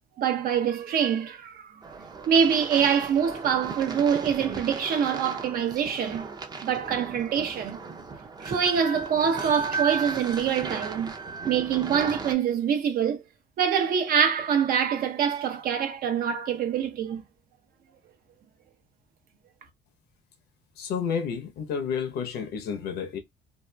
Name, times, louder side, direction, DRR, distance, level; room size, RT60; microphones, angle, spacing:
voice 1, 0.2-1.7 2.3-6.3 6.6-7.8 8.4-11.1 11.4-13.2 13.6-17.2, right 7 dB, 60° right, 0.7 m, -25 dB
sound 1, 1.8-12.3, right 4 dB, 25° right, 0.6 m, -36 dB
voice 2, 20.8-23.2, left 7 dB, 70° left, 0.8 m, -30 dB
2.8 x 2.4 x 2.2 m
cardioid pair, 110°, 17 cm